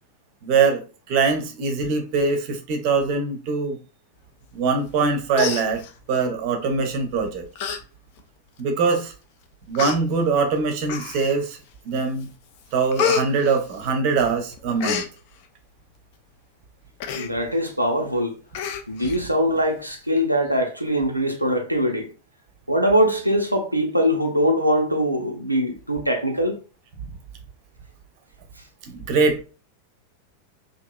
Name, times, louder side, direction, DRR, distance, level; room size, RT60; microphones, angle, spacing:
voice 1, 0.4-3.8 4.5-5.8 6.1-7.5 8.6-9.1 9.7-11.6 11.8-12.3 12.7-15.1 28.9-29.4, right 4 dB, 45° right, 0.6 m, -22 dB
Human voice, 4.9-5.1 5.3-6.2 7.0-7.2 7.6-7.8 8.2-8.3 9.1-9.2 9.7-10.0 10.9-11.4 11.9-12.3 12.5-14.2 14.5-15.1 17.0-17.3 17.7-17.8 18.0-18.2 18.5-19.2 19.6-19.7, left 7 dB, 50° left, 0.4 m, -28 dB
voice 2, 17.1-18.3 18.9-22.1 22.7-26.6, equal, 90° right, 0.4 m, -22 dB
2.8 x 2.5 x 2.2 m
figure-of-eight pair, 90°, 0 cm